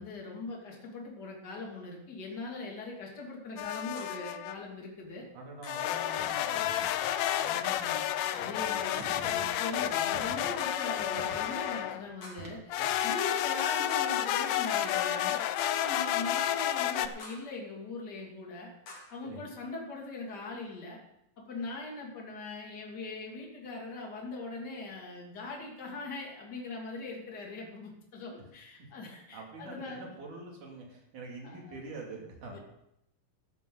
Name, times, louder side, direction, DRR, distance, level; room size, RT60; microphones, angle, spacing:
voice 1, 0.0-5.2 7.4-12.7 13.0-15.4 15.7-18.7 19.1-21.0 21.4-30.2 31.4-31.8 32.5-32.6, left 3 dB, 30° left, -1 dB, 2.9 m, -41 dB
sound 1, 3.6-4.6 5.7-12.1 12.7-17.1, left 12 dB, 85° left, 1.6 m, -31 dB
sound 2, 4.0-4.3 5.6-5.9 7.3-7.6 8.9-9.3 10.6-10.9 12.2-12.6 13.9-14.3 15.6-16.0 17.2-17.6 18.9-19.3, left 2 dB, 65° left, 4.0 m, -49 dB
voice 2, 5.3-6.8 8.4-8.5 12.8-12.9 19.2-19.5 29.3-32.6, right 3 dB, 70° right, 0 dB, 4.1 m, -45 dB
sound 3, 6.1-12.9, right 4 dB, 45° right, 1.9 m, -49 dB
13.5 x 12.5 x 3.9 m, 0.81 s
omnidirectional pair, 3.8 m